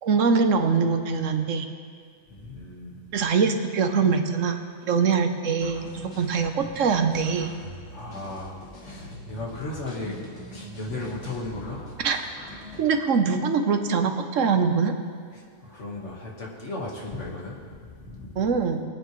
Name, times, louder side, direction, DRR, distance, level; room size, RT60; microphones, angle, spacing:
voice 1, 0.0-1.7 3.1-4.6 4.9-7.5 12.0-12.2 12.8-15.0 18.4-18.8, right 5 dB, 90° right, 6 dB, 1.3 m, -23 dB
voice 2, 2.3-3.0 7.9-10.2 10.5-11.8 15.3-18.3, left 2 dB, 70° left, -2 dB, 2.1 m, -36 dB
sound 1, 5.6-12.8, left 1 dB, 90° left, 2.3 m, -43 dB
22.0 x 9.0 x 3.2 m, 2.1 s
omnidirectional pair, 1.3 m